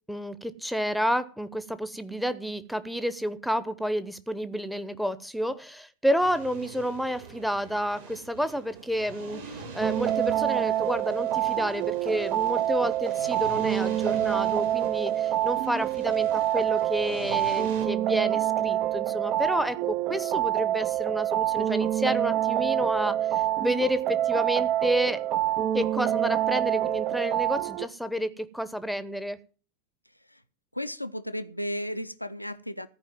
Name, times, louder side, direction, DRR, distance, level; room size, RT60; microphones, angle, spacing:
voice 1, 0.1-25.2 25.7-29.4, equal, ahead, 14 dB, 0.8 m, -30 dB
sound 1, 6.2-17.9, right 3 dB, 55° right, 3.8 m, -45 dB
sound 2, 9.8-27.9, right 12 dB, 35° right, 0.5 m, -26 dB
voice 2, 30.7-32.9, equal, 90° left, 11 dB, 0.6 m, -34 dB
14.0 x 4.9 x 8.9 m, 0.40 s
figure-of-eight pair, 90°, 0 cm